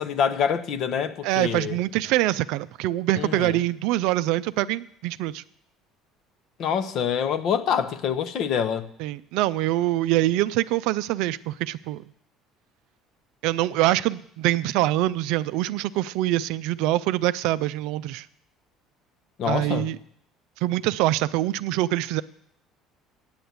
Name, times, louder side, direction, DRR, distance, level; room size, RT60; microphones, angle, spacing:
voice 1, 0.0-1.8 3.1-3.6 6.6-8.9 19.4-19.9, left 7 dB, 55° left, 0.8 m, -26 dB
voice 2, 1.2-5.4 9.0-12.0 13.4-18.2 19.4-20.0 20.6-22.2, right 15 dB, 65° right, 0.4 m, -24 dB
8.8 x 7.9 x 7.8 m
hypercardioid pair, 60°, 0 cm